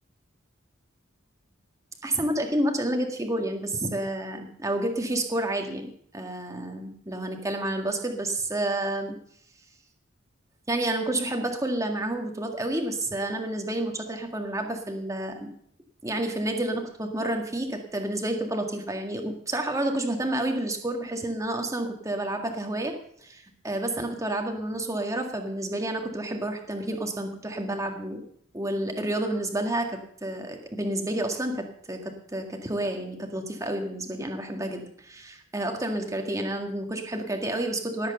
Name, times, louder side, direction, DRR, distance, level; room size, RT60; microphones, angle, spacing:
voice 1, 2.0-9.2 10.7-15.5 16.0-28.2 28.5-38.1, right 1 dB, 15° right, 3 dB, 1.8 m, -30 dB
19.0 x 8.1 x 6.8 m, 0.65 s
head